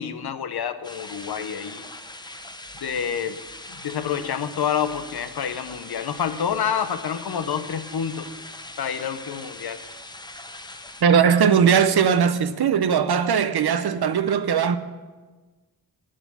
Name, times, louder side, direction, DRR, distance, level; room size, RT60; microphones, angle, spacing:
voice 1, 0.0-1.9 2.8-3.4 3.7-8.3 8.8-9.8, left 8 dB, 85° left, 0.8 m, -28 dB
sound 1, 0.8-11.0, left 2 dB, 10° left, 0.6 m, -41 dB
voice 2, 11.0-14.8, right 7 dB, 85° right, 0.8 m, -19 dB
9.4 x 7.5 x 8.3 m
wide cardioid pair, 110°, 37 cm